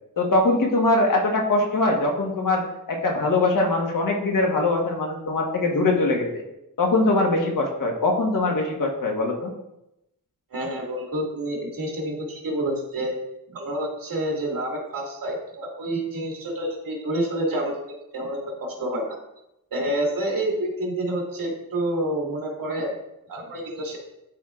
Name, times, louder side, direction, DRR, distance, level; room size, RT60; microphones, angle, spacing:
voice 1, 0.2-6.4 6.8-9.5, left 2 dB, 65° left, 1 dB, 1.4 m, -22 dB
voice 2, 10.5-13.1 13.5-19.2 19.7-22.9 23.3-24.0, right 1 dB, 70° right, -1 dB, 2.1 m, -28 dB
12.0 x 4.6 x 2.5 m, 0.88 s
wide cardioid pair, 135°, 35 cm